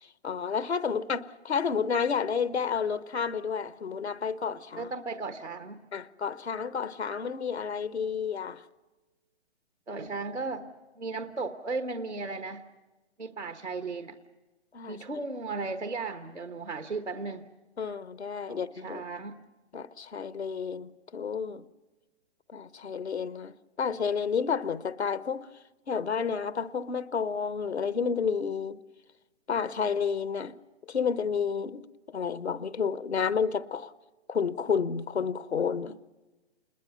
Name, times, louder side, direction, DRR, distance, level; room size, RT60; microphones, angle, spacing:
voice 1, 0.0-4.9 5.9-8.6 14.7-15.0 17.8-19.0 19.7-21.7 22.5-25.5 25.9-28.8 29.5-30.5 30.9-33.9 34.3-36.0, left 6 dB, 70° left, 1.0 m, -30 dB
voice 2, 4.8-5.8 9.9-10.7 11.0-12.6 13.2-14.2 14.9-17.5 18.5-19.4, right 3 dB, 85° right, 1.4 m, -35 dB
28.0 x 21.0 x 7.0 m
figure-of-eight pair, 130°, 34 cm